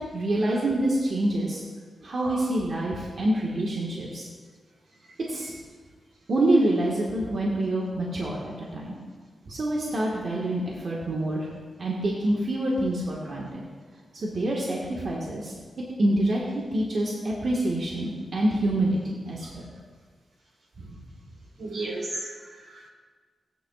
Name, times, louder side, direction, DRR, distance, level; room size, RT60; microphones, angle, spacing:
voice 1, 0.1-1.6 2.0-4.2 5.3-5.5 6.3-8.9 9.5-11.5 11.8-13.6 14.1-15.5 16.0-19.6, right 1 dB, 55° right, -4 dB, 1.6 m, -26 dB
voice 2, 21.6-22.9, right 2 dB, 85° right, -4 dB, 3.1 m, -35 dB
16.0 x 9.8 x 2.4 m, 1.6 s
wide cardioid pair, 125°, 0 cm